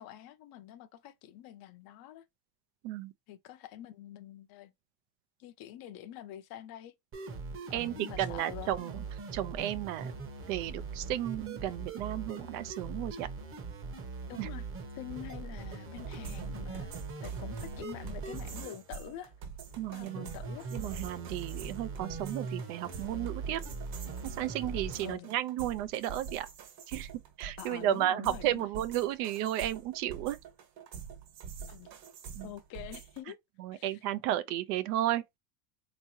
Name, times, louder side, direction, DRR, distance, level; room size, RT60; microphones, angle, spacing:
voice 1, 0.0-2.2 3.3-4.7 5.4-6.9 7.7-8.7 14.3-14.7 14.9-16.9 17.2-19.3 19.9-20.7 25.0-25.3 27.6-28.7 31.7-31.9 32.4-33.4 33.7-34.0, left 12 dB, 50° left, 0.6 m, -46 dB
sound 1, 7.1-25.1, right 4 dB, 25° right, 0.9 m, -41 dB
voice 2, 7.7-9.0 9.3-10.1 10.5-13.3 14.4-14.5 19.8-20.3 20.7-23.6 24.2-26.5 26.9-27.1 27.4-30.4 32.4-32.5 33.6-35.2, right 12 dB, 70° right, 0.7 m, -33 dB
sound 2, 16.0-33.2, right 6 dB, 50° right, 1.4 m, -46 dB
3.6 x 3.0 x 2.7 m
supercardioid pair, 125°, 47 cm